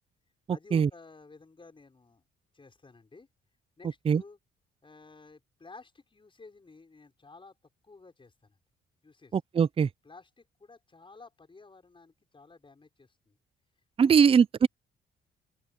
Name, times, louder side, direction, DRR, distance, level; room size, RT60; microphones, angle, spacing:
voice 1, 0.5-2.2 2.5-3.3 3.8-4.4 4.8-7.5 7.8-8.6 9.0-9.4 10.0-13.4 14.0-14.1, left 3 dB, 25° left, 5.9 m, -53 dB
voice 2, 9.3-9.9 14.0-14.7, right 6 dB, 30° right, 0.4 m, -21 dB
open air
cardioid pair, 90°, 20 cm